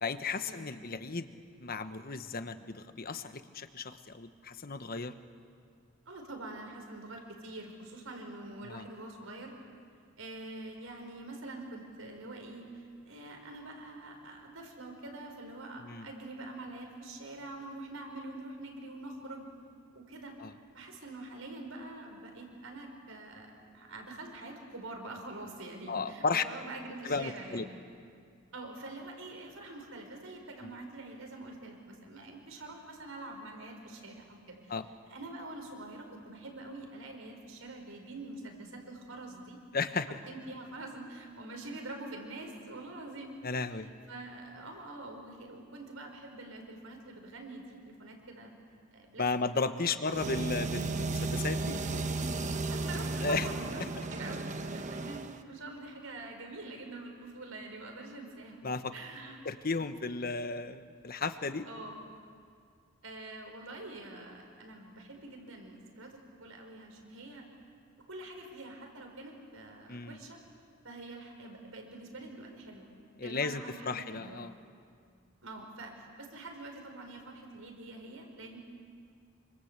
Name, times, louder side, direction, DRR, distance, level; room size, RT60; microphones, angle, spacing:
voice 1, 0.0-1.3 1.6-5.1 8.6-8.8 15.8-16.1 20.4-20.5 25.9-26.4 27.0-27.7 30.6-30.7 34.7-34.9 39.7-40.2 43.4-43.9 49.2-51.8 53.2-53.5 53.8-53.9 58.6-58.9 59.4-61.7 69.9-70.2 73.2-74.5, left 4 dB, 45° left, 10 dB, 1.2 m, -34 dB
voice 2, 6.1-9.6 10.2-19.5 19.9-20.3 20.7-27.7 28.5-34.7 35.1-39.6 40.3-43.4 44.1-48.5 48.9-49.3 49.9-50.0 52.7-53.8 54.1-58.6 58.9-59.4 61.7-62.0 63.0-67.5 68.1-70.4 70.8-72.9 73.2-74.4 75.4-78.6, right 2 dB, 85° right, 3 dB, 5.2 m, -45 dB
sound 1, 50.1-55.4, right 3 dB, 35° right, 1.1 m, -34 dB
27.0 x 25.5 x 8.2 m, 2.2 s
head